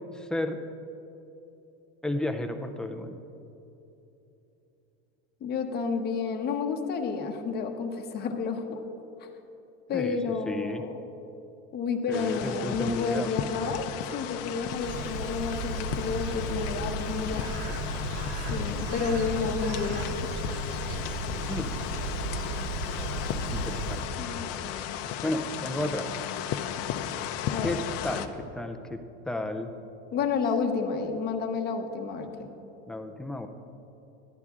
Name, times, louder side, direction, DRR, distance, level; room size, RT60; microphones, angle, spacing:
voice 1, 0.1-0.6 2.0-3.2 9.9-10.2 10.5-10.8 12.1-13.3 21.5-21.9 23.5-24.2 25.2-26.1 27.6-29.0 29.3-29.7 32.9-33.5, left 1 dB, ahead, 5 dB, 0.3 m, -33 dB
voice 2, 5.4-8.8 9.2-9.3 9.9-10.9 11.7-13.9 14.1-17.5 18.5-20.3 24.2-24.5 27.5-27.8 30.1-32.5, left 5 dB, 30° left, 4 dB, 0.9 m, -30 dB
sound 1, 12.1-28.3, left 9 dB, 50° left, 0.6 m, -35 dB
Bird, 14.4-24.4, right 1 dB, 50° right, 1.2 m, -34 dB
11.5 x 9.7 x 3.6 m, 3.0 s
supercardioid pair, 135°, 32 cm